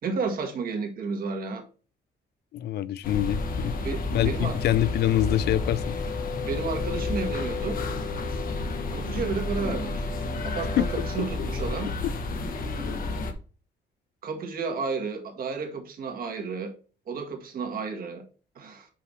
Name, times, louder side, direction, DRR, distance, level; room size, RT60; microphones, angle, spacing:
voice 1, 0.0-1.6 3.8-4.6 6.4-7.8 8.9-10.1 10.4-11.9 14.2-16.7 17.1-18.2 18.5-18.9, right 5 dB, 55° right, 1.8 m, -32 dB
voice 2, 2.5-3.8 4.1-6.0 10.8-10.9 12.0-12.1, left 13 dB, 70° left, 0.5 m, -25 dB
sound 1, 3.0-13.3, left 3 dB, 55° left, 1.3 m, -30 dB
5.7 x 4.9 x 5.5 m
cardioid pair, 140°, 18 cm